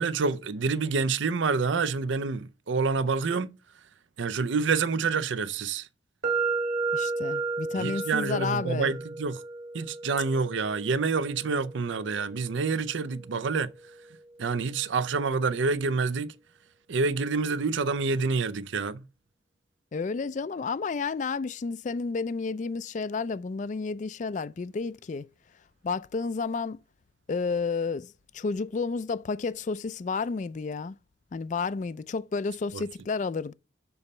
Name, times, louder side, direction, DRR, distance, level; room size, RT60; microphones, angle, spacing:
voice 1, 0.0-3.6 4.2-5.9 7.8-9.4 9.7-13.7 14.4-16.3 16.9-19.0 32.7-32.8, right 4 dB, 75° right, 0.5 m, -27 dB
sound 1, 6.2-14.1, right 4 dB, 50° right, 1.6 m, -34 dB
voice 2, 6.9-8.9 19.9-25.3 25.8-26.8 27.3-31.0 31.3-33.5, left 4 dB, 40° left, 0.3 m, -31 dB
6.9 x 4.1 x 5.4 m
head